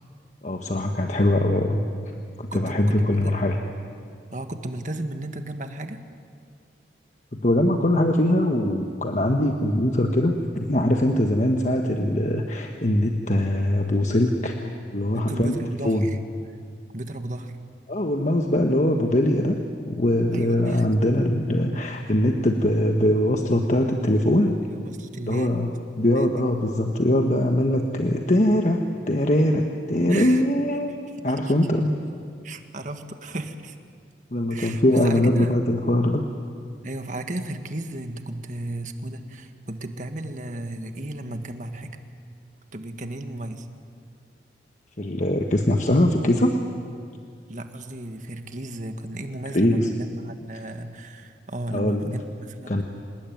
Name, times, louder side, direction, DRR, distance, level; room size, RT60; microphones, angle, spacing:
voice 1, 0.4-1.8 2.4-3.6 7.3-15.6 15.8-16.1 17.9-24.6 25.3-25.7 26.0-31.0 31.2-32.0 34.3-36.3 45.0-46.6 49.5-49.9 51.7-52.1 52.7-52.8, left 1 dB, 40° left, 3 dB, 1.3 m, -22 dB
voice 2, 2.5-3.4 4.3-6.0 15.1-16.2 16.9-17.6 20.3-20.8 24.7-25.6 26.1-26.3 29.9-30.4 31.4-31.5 32.4-33.8 34.5-35.6 36.8-42.0 42.7-43.7 47.5-52.8, right 1 dB, 45° right, 7 dB, 1.7 m, -34 dB
27.0 x 19.5 x 9.3 m, 2.2 s
head